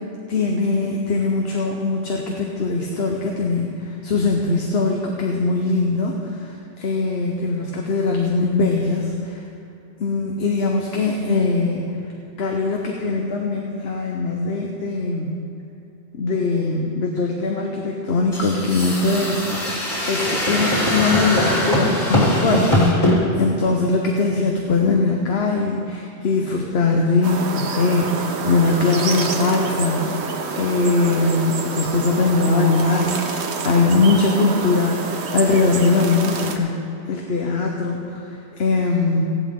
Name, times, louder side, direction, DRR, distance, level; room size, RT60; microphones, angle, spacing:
voice 1, 0.3-9.4 10.0-11.8 12.4-15.4 16.1-36.8 37.1-39.2, left 3 dB, 65° left, 1 dB, 1.2 m, -21 dB
sound 1, 18.3-23.2, left 1 dB, 30° left, 3.5 m, -21 dB
sound 2, 27.2-36.6, right 5 dB, 75° right, 1.1 m, -27 dB
15.5 x 11.5 x 3.7 m, 2.8 s
omnidirectional pair, 1.1 m